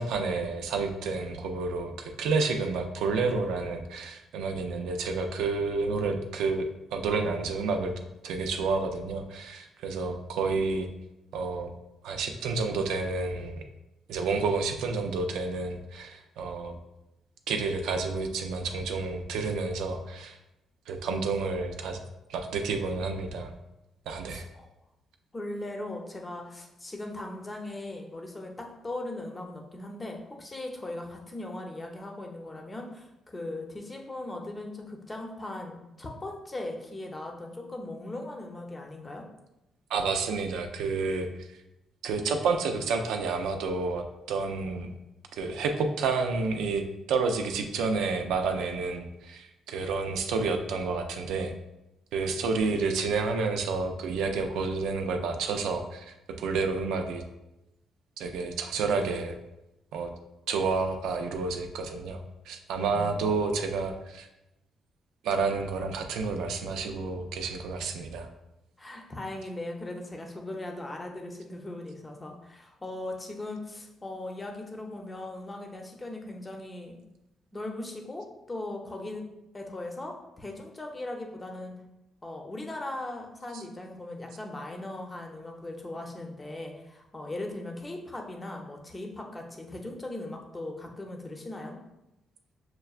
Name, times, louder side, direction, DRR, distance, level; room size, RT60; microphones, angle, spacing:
voice 1, 0.0-7.9 8.2-10.9 11.3-11.7 12.0-13.6 14.1-16.8 17.5-20.4 20.9-22.0 22.3-23.5 24.1-24.4 39.9-41.5 42.0-44.9 45.3-51.5 52.1-57.2 58.2-59.4 59.9-60.1 60.5-64.3 65.2-68.3 83.5-83.6, right 4 dB, 85° right, 5 dB, 0.4 m, -30 dB
voice 2, 24.3-24.7 25.3-39.2 62.8-63.2 68.8-77.0 77.5-79.2 79.5-81.7 82.2-91.8, left 2 dB, 20° left, 2 dB, 0.7 m, -39 dB
6.5 x 2.2 x 2.4 m, 0.92 s
cardioid pair, 90°, 0 cm